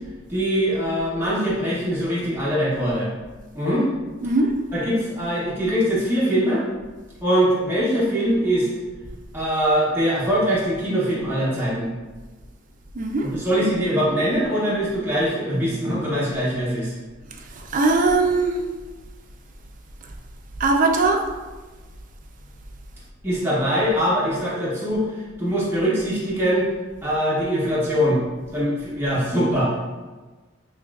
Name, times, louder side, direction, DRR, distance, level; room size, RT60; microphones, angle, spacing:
voice 1, 0.3-3.1 3.5-3.9 4.7-6.6 7.2-8.7 9.3-11.9 13.2-16.9 23.2-26.7 27.0-28.2 28.5-29.8, equal, 10° right, -8 dB, 0.7 m, -22 dB
voice 2, 4.2-4.5 12.9-13.3 17.6-18.6 20.6-21.3, right 3 dB, 40° right, 4 dB, 0.4 m, -20 dB
5.8 x 2.4 x 2.3 m, 1.3 s
head